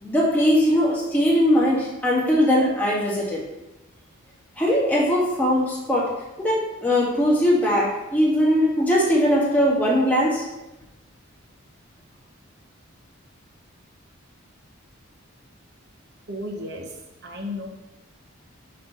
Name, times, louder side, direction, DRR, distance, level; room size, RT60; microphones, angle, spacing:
voice 1, 0.0-3.4 4.6-6.1 6.4-10.4, equal, 10° left, -6 dB, 1.8 m, -20 dB
voice 2, 16.3-16.9 17.2-17.7, left 1 dB, 50° right, 1 dB, 1.2 m, -33 dB
7.6 x 3.4 x 5.6 m, 1.0 s
head